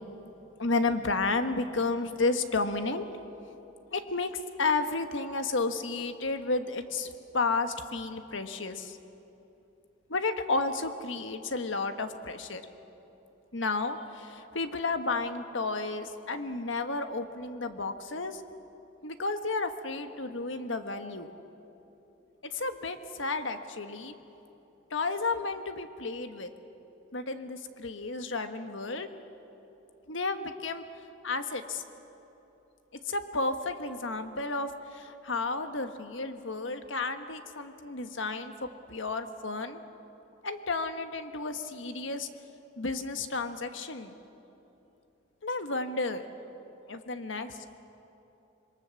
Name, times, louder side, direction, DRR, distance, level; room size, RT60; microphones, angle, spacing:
voice 1, 0.6-3.1 3.9-9.0 10.1-12.6 13.5-18.4 19.0-21.3 22.5-24.1 24.9-26.5 27.1-29.1 30.1-30.8 31.2-31.8 33.0-39.8 40.4-42.3 42.8-44.1 45.4-46.2 46.9-47.7, left 3 dB, 75° left, 8 dB, 1.4 m, -32 dB
26.5 x 22.0 x 7.1 m, 3.0 s
head